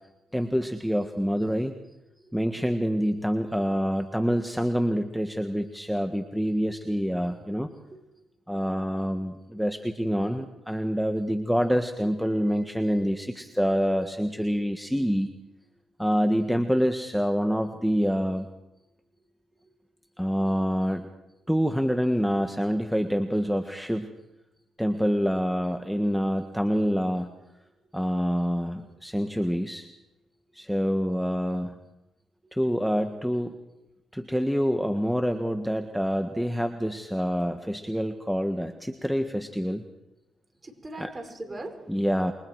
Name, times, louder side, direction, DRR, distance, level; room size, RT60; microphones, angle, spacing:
voice 1, 0.3-1.7 2.3-7.7 8.5-15.3 16.0-18.5 20.2-21.1 21.5-24.1 24.8-27.3 27.9-29.9 30.5-31.8 32.5-33.6 34.1-39.8 41.0-41.1 41.9-42.3, equal, ahead, 6 dB, 1.5 m, -26 dB
voice 2, 40.6-42.1, right 2 dB, 30° right, 5 dB, 5.6 m, -41 dB
27.5 x 23.5 x 4.8 m, 0.94 s
supercardioid pair, 60°, 0 cm